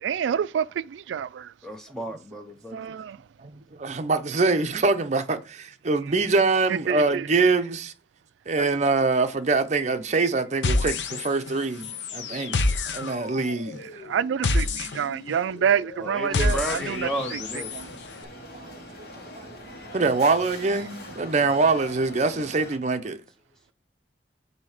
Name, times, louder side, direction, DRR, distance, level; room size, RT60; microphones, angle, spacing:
voice 1, 0.0-1.5 2.7-3.2 6.9-7.2 8.6-8.7 14.1-17.4 17.7-17.9, right 8 dB, 85° right, 0.3 m, -27 dB
voice 2, 1.6-2.8 16.0-17.7, equal, 5° left, 0.7 m, -32 dB
voice 3, 3.4-7.9 8.5-12.6 12.9-13.8 18.5-19.1 19.9-23.2, right 3 dB, 40° right, 0.6 m, -24 dB
sound 1, 10.6-11.5 11.8-17.8, left 2 dB, 80° left, 0.6 m, -28 dB
sound 2, 16.4-22.8, left 1 dB, 60° left, 1.4 m, -42 dB
7.4 x 2.8 x 4.9 m
head